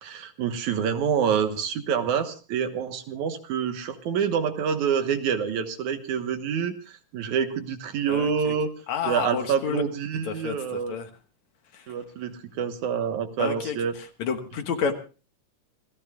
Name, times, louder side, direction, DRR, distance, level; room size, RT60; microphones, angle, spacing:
voice 1, 0.0-8.7 9.0-11.0 11.9-13.9, right 7 dB, 70° right, 8 dB, 2.6 m, -27 dB
voice 2, 8.1-8.5 8.9-9.8 10.3-11.1 11.7-11.8 13.4-13.8 14.2-14.9, left 6 dB, 65° left, 7 dB, 2.6 m, -29 dB
27.5 x 17.5 x 2.4 m, 0.36 s
omnidirectional pair, 3.7 m